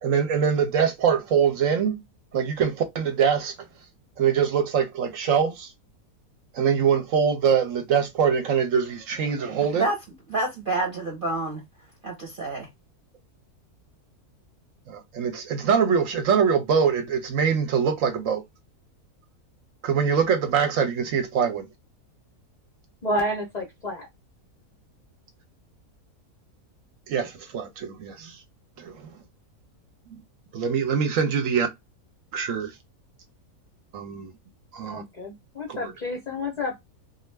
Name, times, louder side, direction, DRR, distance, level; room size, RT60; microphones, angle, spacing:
voice 1, 0.0-2.0 2.3-3.5 4.2-5.7 6.5-9.9 14.9-18.4 19.8-21.7 27.1-28.4 28.8-29.1 30.1-30.2 30.5-31.7 32.3-32.7 33.9-34.3 34.7-35.0 35.7-35.9, right 7 dB, 65° right, 0.9 m, -23 dB
voice 2, 10.3-11.6 12.0-12.7, right 2 dB, 45° right, 0.8 m, -28 dB
voice 3, 23.0-24.1 34.9-36.8, left 1 dB, 50° left, 0.5 m, -30 dB
2.4 x 2.3 x 3.2 m
omnidirectional pair, 1.7 m